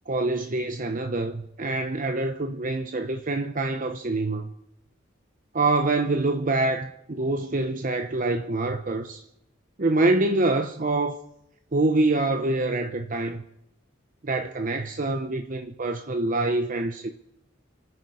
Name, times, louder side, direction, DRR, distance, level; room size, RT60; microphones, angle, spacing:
voice 1, 0.1-4.5 5.5-9.2 9.8-11.2 11.7-13.4 14.2-17.1, right 2 dB, 45° right, 0.9 m, -25 dB
29.0 x 9.9 x 4.9 m
head